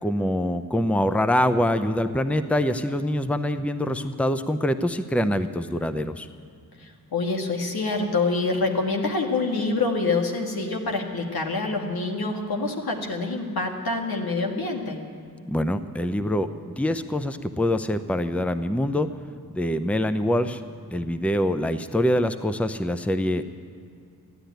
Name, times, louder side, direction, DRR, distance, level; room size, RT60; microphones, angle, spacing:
voice 1, 0.0-6.3 15.4-16.5 16.8-19.1 19.5-20.6 20.9-23.4, left 1 dB, 5° left, 10 dB, 0.7 m, -24 dB
voice 2, 6.8-15.0, left 3 dB, 75° left, 2 dB, 2.0 m, -26 dB
15.0 x 10.0 x 9.3 m, 2.4 s
cardioid pair, 50°, 36 cm